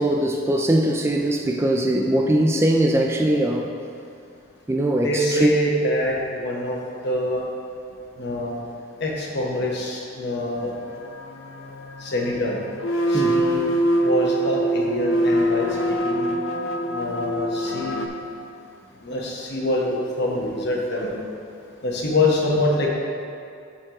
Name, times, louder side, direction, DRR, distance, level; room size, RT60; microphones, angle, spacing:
voice 1, 0.0-3.7 4.7-5.5 13.1-13.4, right 1 dB, 15° right, 1 dB, 0.3 m, -21 dB
voice 2, 5.0-6.8 7.0-7.4 8.2-8.6 9.0-10.7 12.0-12.6 13.1-13.7 14.0-16.3 16.9-18.0 19.0-21.2 21.8-22.9, left 1 dB, 55° left, -2 dB, 1.1 m, -25 dB
sound 1, 10.8-18.1, right 1 dB, 80° left, 0.6 m, -24 dB
12.5 x 4.3 x 3.0 m, 2.5 s
head